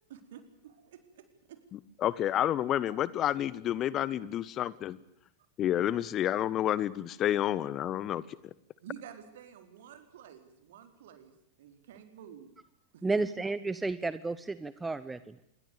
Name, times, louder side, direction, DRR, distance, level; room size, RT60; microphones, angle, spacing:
voice 1, 0.1-0.9 8.8-12.5 12.9-13.2, right 9 dB, 55° right, 9 dB, 4.3 m, -50 dB
voice 2, 2.0-5.0 5.6-8.2, left 11 dB, 30° left, 19 dB, 1.2 m, -29 dB
voice 3, 13.0-15.4, right 3 dB, 10° right, 15 dB, 1.1 m, -32 dB
27.5 x 22.5 x 7.0 m, 0.74 s
figure-of-eight pair, 90°, 0 cm